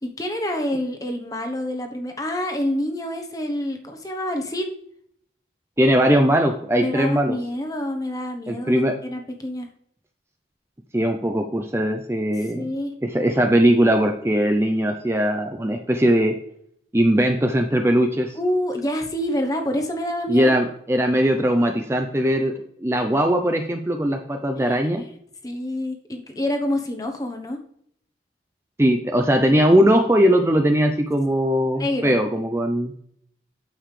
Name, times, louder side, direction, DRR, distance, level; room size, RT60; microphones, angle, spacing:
voice 1, 0.0-4.7 6.8-9.7 12.5-12.9 18.4-20.5 24.6-25.1 25.4-27.6 31.7-32.1, left 1 dB, 20° left, 4 dB, 1.0 m, -27 dB
voice 2, 5.8-7.4 8.5-8.9 10.9-12.7 13.0-16.3 16.9-18.4 20.3-22.5 22.8-25.0 28.8-32.9, equal, 15° right, 4 dB, 0.5 m, -20 dB
9.0 x 7.0 x 3.3 m, 0.67 s
head